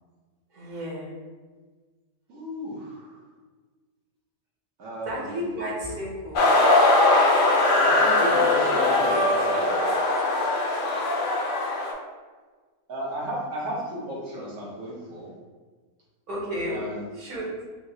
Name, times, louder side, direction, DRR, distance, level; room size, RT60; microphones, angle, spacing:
voice 1, 0.5-1.2 5.0-6.4 16.3-16.8 17.1-17.5, equal, 85° right, -4 dB, 1.5 m, -32 dB
voice 2, 2.3-3.2 4.8-5.3 7.8-9.8 12.9-15.3 16.7-17.0, right 1 dB, 70° right, -6 dB, 1.3 m, -34 dB
sound 1, 6.4-11.9, left 2 dB, 85° left, 0.4 m, -21 dB
4.6 x 2.0 x 2.7 m, 1.4 s
omnidirectional pair, 1.6 m